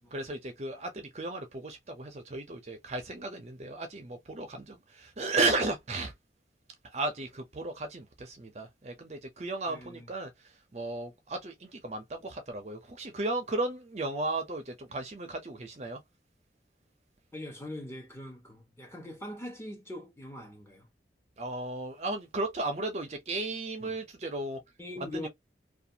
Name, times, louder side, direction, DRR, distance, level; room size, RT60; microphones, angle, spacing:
voice 1, 0.1-6.1 6.9-16.0 21.4-24.6 25.0-25.3, right 2 dB, 35° right, 0.5 m, -34 dB
voice 2, 9.7-10.1 17.3-20.9 23.8-24.0 24.8-25.3, left 1 dB, 15° left, 0.9 m, -42 dB
2.5 x 2.3 x 2.7 m
head